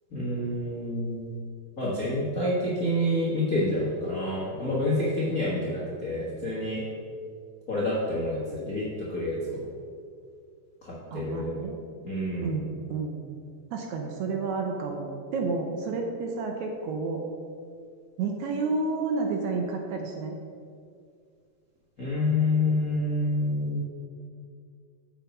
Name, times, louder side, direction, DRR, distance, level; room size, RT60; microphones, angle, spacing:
voice 1, 0.1-1.3 1.8-6.8 7.7-9.7 10.8-11.6 12.0-12.5 22.0-23.8, left 1 dB, 50° left, -7 dB, 1.0 m, -28 dB
voice 2, 11.1-11.8 12.4-13.2 13.7-17.2 18.2-20.4, right 4 dB, 70° right, 2 dB, 1.9 m, -30 dB
8.0 x 6.1 x 5.5 m, 2.2 s
omnidirectional pair, 3.8 m